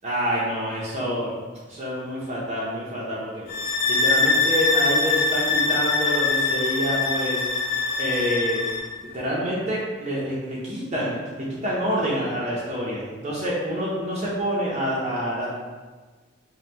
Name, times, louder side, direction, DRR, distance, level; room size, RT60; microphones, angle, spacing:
voice 1, 0.0-1.3 1.7-3.4 3.9-7.4 8.0-8.6 9.0-15.6, equal, 35° right, -7 dB, 0.7 m, -27 dB
sound 1, 3.5-8.9, left 4 dB, 50° left, 0.7 m, -23 dB
5.3 x 2.3 x 2.9 m, 1.4 s
head